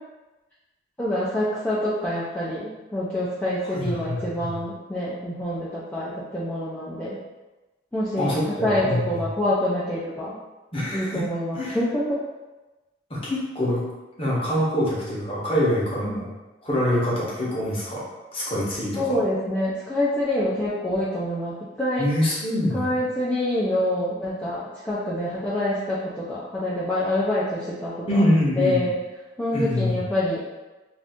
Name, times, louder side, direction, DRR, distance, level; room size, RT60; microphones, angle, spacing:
voice 1, 1.0-7.2 7.9-8.3 8.6-10.3 10.9-12.2 16.0-16.2 18.9-22.1 22.7-28.2 28.6-28.9 29.4-30.6, left 1 dB, 10° left, -9 dB, 0.4 m, -26 dB
voice 2, 3.6-4.5 8.2-9.2 10.7-11.2 11.5-11.8 13.1-13.8 14.2-16.3 16.6-19.2 22.0-23.0 28.1-28.8 29.5-30.0, left 1 dB, 30° left, -6 dB, 0.8 m, -25 dB
2.5 x 2.4 x 3.5 m, 1.1 s
head